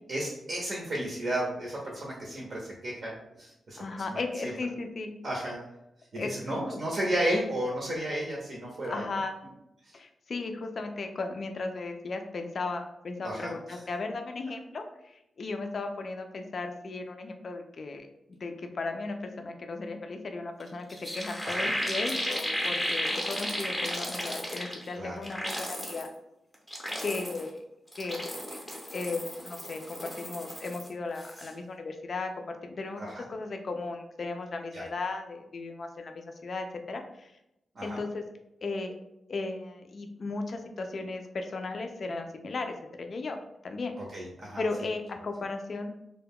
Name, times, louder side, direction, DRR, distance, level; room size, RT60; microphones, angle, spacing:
voice 1, 0.1-4.5 5.2-5.6 6.1-9.0 9.8-10.0 13.2-13.8 21.4-21.7 24.9-25.2 33.0-33.2 34.7-34.8 37.7-38.0 44.0-44.6, right 1 dB, 50° right, -3 dB, 0.6 m, -33 dB
voice 2, 3.8-5.1 6.2-6.8 8.8-9.3 9.9-26.1 27.0-27.6 27.9-28.6 28.9-37.3 37.8-38.2 38.6-38.9 39.3-43.9 44.6-46.0, left 3 dB, 50° left, 5 dB, 0.3 m, -36 dB
sound 1, 20.6-20.7 20.9-24.9 25.2-26.1 26.5-27.5 27.9-30.9 31.2-31.5, equal, ahead, 0.6 m, -34 dB
2.2 x 2.1 x 3.5 m, 0.86 s
wide cardioid pair, 125°, 0 cm